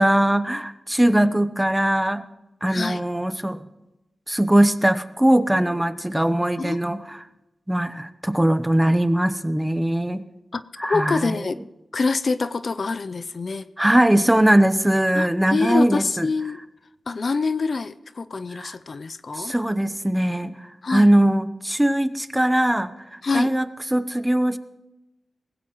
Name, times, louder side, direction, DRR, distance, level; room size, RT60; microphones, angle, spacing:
voice 1, 0.0-2.2 2.6-3.6 4.3-7.2 7.7-10.2 10.8-11.3 13.8-16.3 18.5-18.7 19.4-20.6 20.9-23.7 23.9-24.6, right 1 dB, 10° right, 12 dB, 0.9 m, -20 dB
voice 2, 1.1-1.4 2.7-3.1 6.6-6.8 10.5-11.6 11.9-13.7 15.1-16.6 17.1-19.5 20.8-21.1 23.2-23.5, left 4 dB, 60° left, 13 dB, 0.5 m, -26 dB
19.0 x 16.0 x 3.1 m, 0.96 s
cardioid pair, 55°, 0 cm